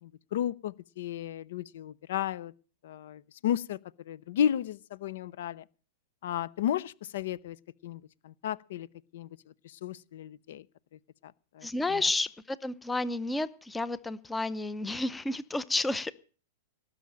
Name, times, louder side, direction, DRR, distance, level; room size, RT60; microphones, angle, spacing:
voice 1, 0.0-2.5 2.8-3.8 4.1-5.6 6.2-7.6 7.8-8.9 9.1-9.3 9.6-10.6 11.2-12.0, left 10 dB, 65° left, 0.6 m, -33 dB
voice 2, 11.6-16.1, left 2 dB, 5° left, 0.6 m, -31 dB
18.5 x 6.4 x 8.9 m
supercardioid pair, 150°, 0 cm